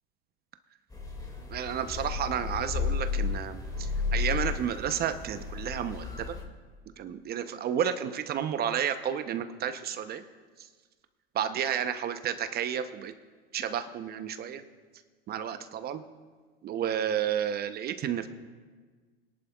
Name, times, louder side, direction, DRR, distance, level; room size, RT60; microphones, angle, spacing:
sound 1, 0.9-6.4, left 5 dB, 10° left, 2.1 m, -33 dB
voice 1, 1.5-6.4 7.0-10.2 10.6-10.7 11.3-13.1 13.5-14.6 15.3-16.0 16.6-18.3, right 9 dB, 30° right, 9 dB, 0.7 m, -31 dB
22.0 x 11.0 x 2.3 m, 1.5 s
hypercardioid pair, 100°, 30 cm